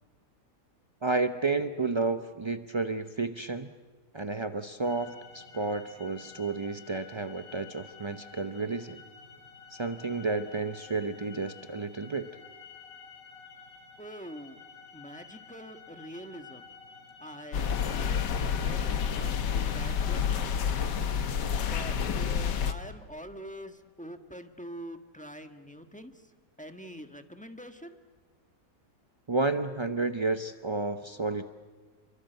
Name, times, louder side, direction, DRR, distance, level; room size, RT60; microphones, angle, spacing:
voice 1, 1.0-3.7 4.1-9.0 9.7-12.3 29.3-31.5, right 3 dB, 50° right, 9 dB, 0.3 m, -31 dB
sound 1, 4.8-21.0, left 5 dB, 35° left, 5.3 m, -51 dB
voice 2, 14.0-14.6 14.9-16.7 17.2-18.3 18.6-20.5 21.6-26.3 26.6-28.0, equal, 5° left, 7 dB, 1.3 m, -45 dB
sound 2, 17.5-22.7, left 7 dB, 85° left, 1.8 m, -29 dB
27.5 x 23.5 x 7.9 m, 1.5 s
omnidirectional pair, 1.8 m